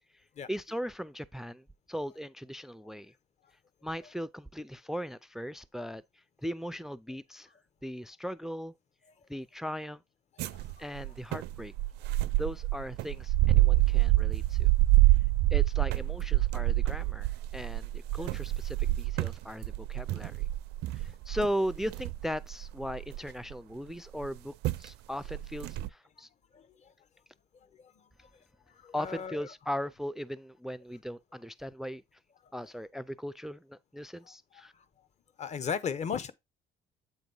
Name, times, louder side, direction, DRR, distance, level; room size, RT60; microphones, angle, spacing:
voice 1, 0.5-3.1 3.8-6.0 6.4-7.5 7.8-8.7 9.3-10.0 10.8-11.7 12.3-14.7 15.5-20.5 20.9-26.3 28.9-32.0 32.5-34.7, equal, ahead, 0.3 m, -38 dB
sound 1, 10.4-23.5 24.2-24.4 24.6-24.9 25.2-25.9, right 17 dB, 80° right, 0.4 m, -27 dB
voice 2, 26.5-26.9 27.8-28.0 28.8-29.5 34.3-34.4 35.4-36.3, left 6 dB, 40° left, 0.9 m, -36 dB
7.9 x 2.9 x 5.3 m
cardioid pair, 110°, 17 cm